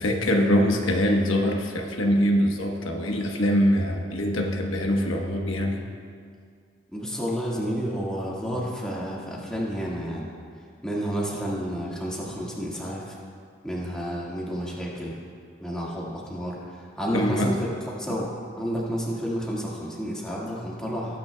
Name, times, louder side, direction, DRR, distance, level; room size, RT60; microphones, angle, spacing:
voice 1, 0.0-5.8 17.1-17.5, equal, 85° left, 1 dB, 1.1 m, -23 dB
voice 2, 6.9-10.3 10.8-13.2 13.6-15.2 15.6-17.6 18.0-21.2, equal, 5° left, -6 dB, 1.7 m, -30 dB
18.0 x 9.5 x 2.2 m, 2.2 s
head